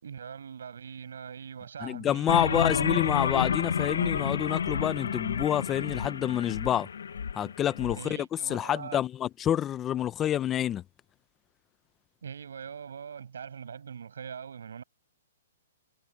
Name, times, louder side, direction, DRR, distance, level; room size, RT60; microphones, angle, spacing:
voice 1, 0.0-2.7 7.9-9.0 12.2-14.8, right 7 dB, 85° right, 6.2 m, -42 dB
voice 2, 1.8-6.9 7.3-10.8, left 10 dB, 15° left, 0.8 m, -28 dB
sound 1, 2.3-8.0, left 7 dB, 90° left, 1.0 m, -30 dB
hypercardioid pair, 160°, 0 cm